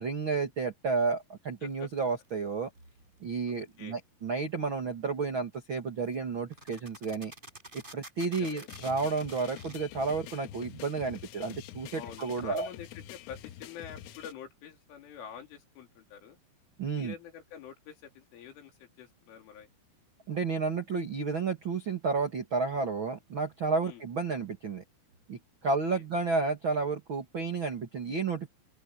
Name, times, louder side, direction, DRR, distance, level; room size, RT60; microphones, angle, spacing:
voice 1, 0.0-2.7 3.2-7.3 7.7-12.7 16.8-17.1 20.3-24.8 25.3-28.5, right 4 dB, 85° right, 1.1 m, -31 dB
sound 1, 2.0-2.3 5.5-5.6 6.1-6.2 6.5-9.8, right 1 dB, 10° right, 6.7 m, -49 dB
voice 2, 3.5-4.0 8.2-8.7 11.9-16.4 16.9-19.7 23.8-24.0 25.6-26.0, left 8 dB, 70° left, 6.0 m, -47 dB
sound 2, 8.7-14.3, left 12 dB, 90° left, 3.8 m, -47 dB
open air
omnidirectional pair, 5.8 m